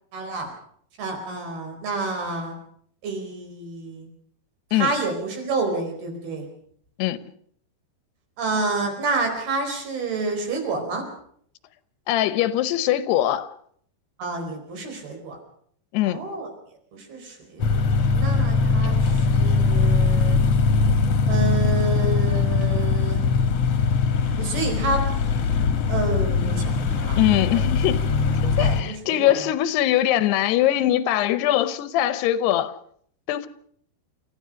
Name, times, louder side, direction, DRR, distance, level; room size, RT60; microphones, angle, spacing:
voice 1, 0.1-0.5 1.0-2.5 3.0-4.1 4.7-6.5 8.4-11.0 14.2-15.4 16.0-16.5 16.9-17.8 18.1-20.4 21.3-23.3 24.4-25.0 25.9-27.6 28.4-29.5, right 3 dB, 70° right, 6.4 m, -29 dB
voice 2, 12.1-13.5 15.9-16.2 27.1-28.1 28.6-32.8 33.3-33.5, left 13 dB, 85° left, 3.0 m, -22 dB
sound 1, 17.6-28.8, left 4 dB, 55° left, 2.0 m, -21 dB
29.0 x 14.5 x 6.4 m
omnidirectional pair, 4.6 m